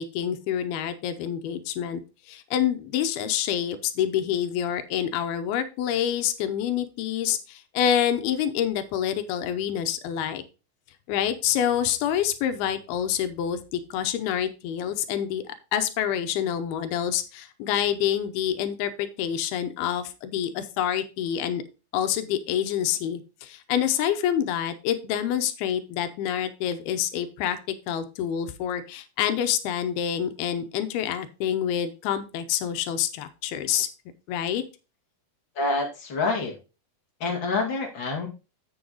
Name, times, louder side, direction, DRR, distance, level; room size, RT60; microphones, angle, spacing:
voice 1, 0.0-2.0 2.3-10.4 11.1-21.6 21.9-33.9 34.3-34.6, left 9 dB, 85° left, 10 dB, 2.7 m, -27 dB
voice 2, 35.5-36.5 37.2-38.3, left 3 dB, 35° left, 0 dB, 2.3 m, -27 dB
7.8 x 6.4 x 3.9 m, 0.31 s
omnidirectional pair, 4.4 m